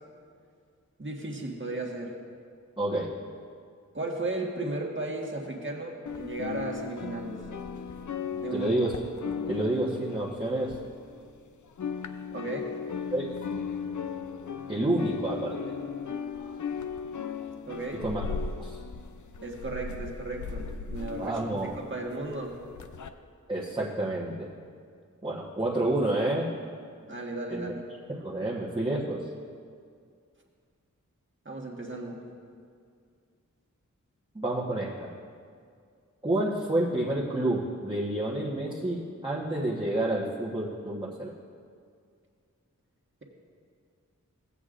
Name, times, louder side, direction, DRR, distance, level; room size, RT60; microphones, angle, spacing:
voice 1, 1.0-2.2 3.9-7.4 8.4-8.7 12.3-12.7 17.7-18.0 19.4-21.4 21.7-22.5 27.1-27.8 31.4-32.2, right 2 dB, 40° right, -1 dB, 1.5 m, -35 dB
voice 2, 2.8-3.1 8.5-9.0 9.5-10.8 13.1-13.3 14.7-15.7 18.0-18.2 18.6-18.8 21.2-21.7 23.5-24.5 25.2-26.5 27.5-27.7 28.1-29.3 34.3-35.1 36.2-41.3, right 1 dB, 15° right, -6 dB, 1.2 m, -29 dB
sound 1, 6.1-11.4 11.6-23.1, left 6 dB, 70° left, 0.5 m, -37 dB
15.5 x 8.2 x 2.5 m, 2.2 s
wide cardioid pair, 50°, 31 cm